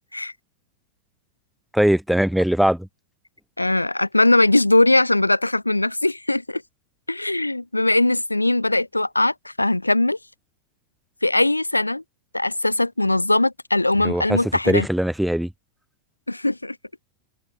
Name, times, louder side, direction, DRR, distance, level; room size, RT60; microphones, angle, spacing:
voice 1, 1.7-2.9 14.0-14.4 14.7-15.5, equal, ahead, 1.2 m, -20 dB
voice 2, 3.6-6.6 7.1-10.2 11.2-12.0 12.3-14.9 16.3-16.8, left 2 dB, 85° left, 0.3 m, -20 dB
open air
figure-of-eight pair, 90°, 0 cm